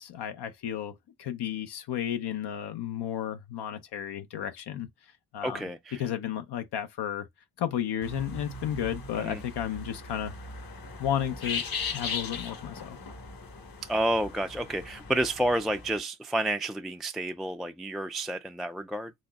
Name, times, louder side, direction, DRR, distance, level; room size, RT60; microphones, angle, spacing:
voice 1, 0.0-4.9 5.3-5.6 6.0-7.3 7.6-10.3 11.0-11.6 11.9-13.0, left 10 dB, 75° left, 0.7 m, -33 dB
voice 2, 5.4-6.0 9.2-9.4 13.8-19.1, right 1 dB, ahead, 0.3 m, -30 dB
sound 1, 8.0-16.0, left 4 dB, 60° left, 1.3 m, -38 dB
4.2 x 3.0 x 2.3 m
supercardioid pair, 50°, 40 cm